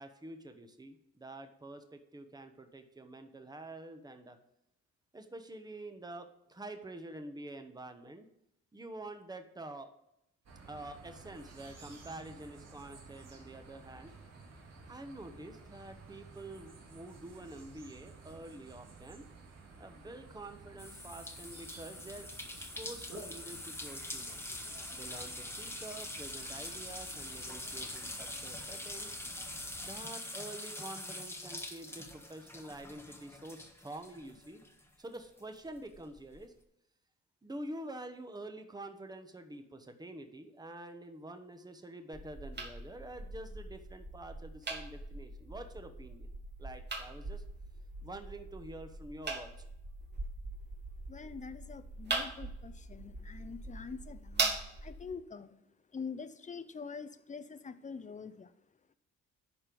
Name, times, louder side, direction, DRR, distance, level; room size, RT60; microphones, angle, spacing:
voice 1, 0.0-4.4 5.1-8.3 8.7-9.9 10.7-14.1 14.9-19.2 19.8-22.3 22.6-24.4 24.9-29.2 29.8-34.6 35.0-36.5 37.4-46.3 46.6-47.4 48.0-49.5, right 1 dB, 15° right, 7 dB, 1.1 m, -47 dB
sound 1, 10.5-30.0, right 3 dB, 55° right, 2.3 m, -53 dB
sound 2, 20.8-34.8 35.1-36.4, left 1 dB, 10° left, 1.3 m, -44 dB
sound 3, 42.1-55.1, right 3 dB, 35° right, 1.9 m, -41 dB
voice 2, 51.1-54.5 54.8-55.6 55.9-58.5, left 5 dB, 25° left, 12 dB, 0.7 m, -45 dB
11.0 x 4.4 x 5.2 m, 0.80 s
cardioid pair, 90°, 30 cm